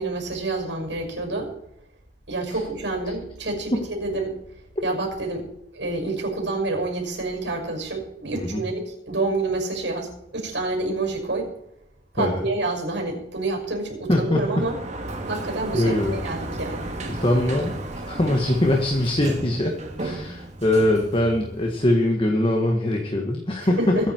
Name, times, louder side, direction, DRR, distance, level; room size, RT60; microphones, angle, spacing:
voice 1, 0.0-1.5 2.3-4.4 4.8-5.5 5.7-11.5 12.1-14.7 15.2-16.9 23.6-24.1, right 2 dB, 70° right, 3 dB, 5.8 m, -28 dB
voice 2, 14.1-14.6 15.7-16.1 17.1-17.7 18.1-23.9, left 1 dB, 30° left, 1 dB, 1.8 m, -22 dB
Sliding door, 14.2-22.0, right 2 dB, 40° right, 2.2 m, -34 dB
22.5 x 9.7 x 4.7 m, 0.78 s
head